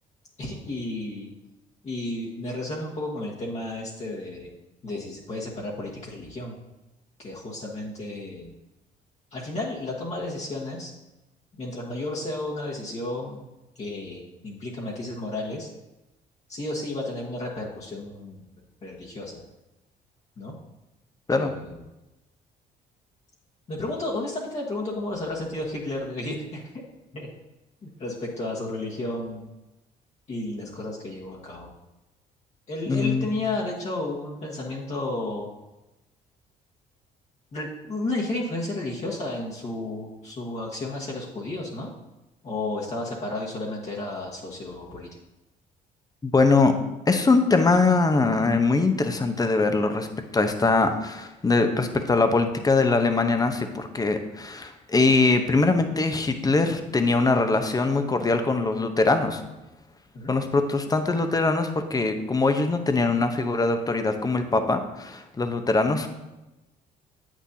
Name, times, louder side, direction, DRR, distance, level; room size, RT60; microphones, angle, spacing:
voice 1, 0.4-1.3 1.8-4.5 4.8-6.5 7.2-8.5 9.3-10.9 11.6-13.4 13.7-15.7 16.5-18.4 18.8-19.4 20.4-20.5 21.3-21.8 23.7-26.6 27.1-27.3 27.8-29.4 30.3-31.7 32.7-35.5 37.5-41.9 42.4-45.1 60.1-60.3, left 2 dB, 40° left, -5 dB, 1.4 m, -32 dB
voice 2, 32.9-33.3 46.2-46.7 47.1-50.1 50.3-59.4 60.3-66.1, left 3 dB, 20° left, 7 dB, 0.8 m, -22 dB
8.1 x 6.2 x 2.8 m, 1.0 s
supercardioid pair, 75°, 17 cm